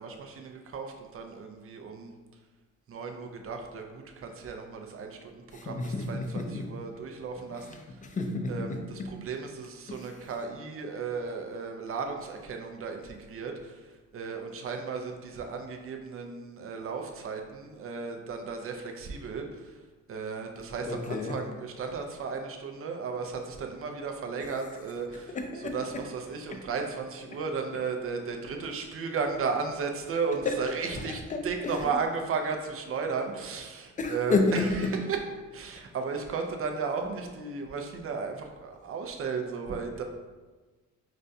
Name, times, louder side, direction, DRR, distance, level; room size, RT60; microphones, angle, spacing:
voice 1, 0.0-2.1 2.9-7.8 8.5-13.7 14.1-19.5 20.1-25.4 25.7-34.7 35.1-35.2 35.5-40.0, right 5 dB, 45° right, 4 dB, 0.5 m, -35 dB
voice 2, 5.5-6.7 7.5-9.1 9.9-10.2 20.9-21.4 24.4-24.5 25.3-26.0 26.5-26.6 30.4-30.6 31.0-31.9 34.0-35.0, left 3 dB, 25° left, 4 dB, 0.5 m, -31 dB
5.0 x 2.2 x 2.6 m, 1.3 s
cardioid pair, 90°, 30 cm